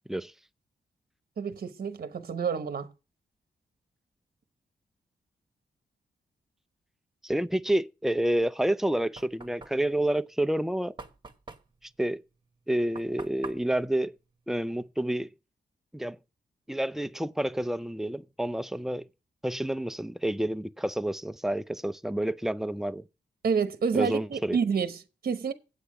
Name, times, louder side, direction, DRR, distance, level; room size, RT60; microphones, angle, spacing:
voice 1, 1.4-2.9 23.4-25.5, right 6 dB, 55° right, 0.9 m, -29 dB
voice 2, 7.2-11.0 12.0-12.2 12.7-14.1 14.5-15.3 15.9-16.2 16.7-19.1 19.4-23.0 23.9-24.6, right 1 dB, ahead, 0.5 m, -29 dB
Knock, 8.6-15.1, right 3 dB, 25° right, 1.3 m, -48 dB
8.3 x 8.1 x 4.9 m
cardioid pair, 85°, 18 cm